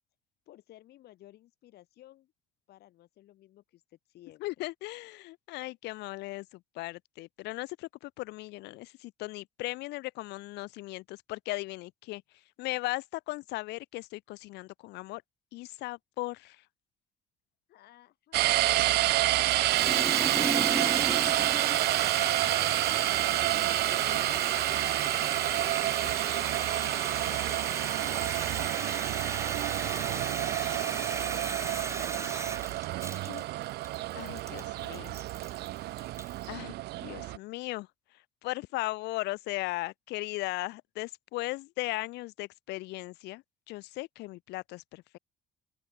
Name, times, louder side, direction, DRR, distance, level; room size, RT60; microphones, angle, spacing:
voice 1, 0.5-2.3 2.7-4.5 17.7-19.1 19.7-24.5 25.0-28.6 29.0-32.5, left 14 dB, 70° left, 5.1 m, -55 dB
voice 2, 4.4-12.2 12.6-15.2 15.5-16.6 33.3-33.4 34.1-35.1 36.5-36.7 37.0-37.9 38.4-45.2, left 20 dB, 90° left, 1.8 m, -37 dB
sound 1, 18.3-37.4, right 17 dB, 75° right, 0.6 m, -29 dB
Water tap faucet, 19.5-36.4, right 3 dB, 15° right, 2.2 m, -36 dB
open air
cardioid pair, 110°, 17 cm